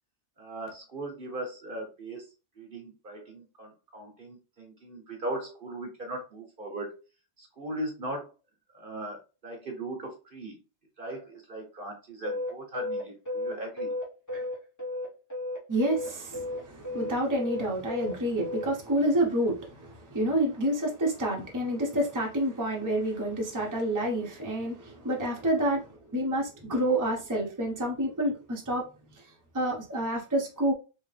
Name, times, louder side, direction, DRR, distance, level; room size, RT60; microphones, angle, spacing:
voice 1, 0.4-7.0 7.4-8.3 8.7-10.6 11.0-13.9, right 1 dB, 50° right, 1.1 m, -39 dB
sound 1, 12.2-15.6 15.8-18.7, left 2 dB, 15° left, 1.0 m, -33 dB
voice 2, 15.7-28.9 29.1-29.2 29.5-30.7, right 1 dB, 15° right, 0.9 m, -28 dB
3.4 x 3.2 x 3.3 m
omnidirectional pair, 1.2 m